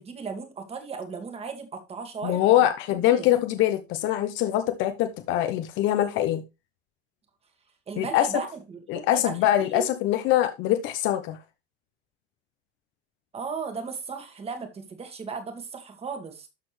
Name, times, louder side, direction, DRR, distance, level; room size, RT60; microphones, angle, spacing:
voice 1, 0.0-2.5 2.9-3.3 7.9-9.4 9.7-9.9 13.3-16.5, right 5 dB, 20° right, 1.8 m, -36 dB
voice 2, 2.2-6.4 8.0-8.3 8.9-11.4, left 12 dB, 35° left, 0.9 m, -23 dB
12.5 x 4.2 x 3.2 m
supercardioid pair, 135°, 32 cm